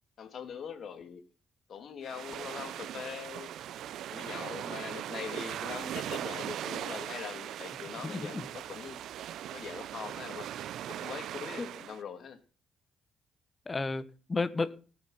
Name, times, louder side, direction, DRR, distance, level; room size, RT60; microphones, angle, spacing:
voice 1, 0.2-1.2 1.7-3.5 4.1-9.0 9.5-10.5 10.9-12.4, left 7 dB, 60° left, 2.6 m, -42 dB
sound 1, 2.0-12.0, right 11 dB, 75° right, 0.6 m, -39 dB
voice 2, 8.0-8.5 11.6-11.7 13.7-14.8, left 3 dB, 25° left, 1.3 m, -32 dB
18.0 x 7.9 x 5.7 m
cardioid pair, 90°, 0 cm